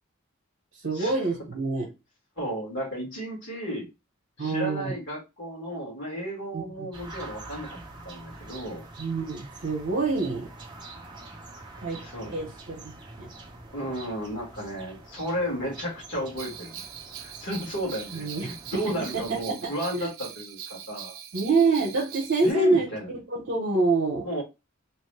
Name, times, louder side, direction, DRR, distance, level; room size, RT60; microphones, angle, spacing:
voice 1, 0.8-1.9 4.4-4.9 6.5-6.9 9.0-10.5 11.8-12.0 12.3-12.8 13.2-13.3 18.1-18.8 19.1-20.1 21.3-22.9 23.3-24.3, right 3 dB, 60° right, -2 dB, 0.8 m, -26 dB
voice 2, 2.4-3.9 4.4-7.8 8.0-8.8 12.0-12.3 13.7-16.8 17.2-21.2 22.4-23.1 24.2-24.4, equal, 60° left, -2 dB, 1.5 m, -33 dB
sound 1, 6.9-19.4, right 2 dB, 20° right, 0.5 m, -45 dB
Bell, 16.4-22.5, right 9 dB, 85° right, 0.4 m, -42 dB
3.0 x 2.1 x 3.2 m, 0.25 s
head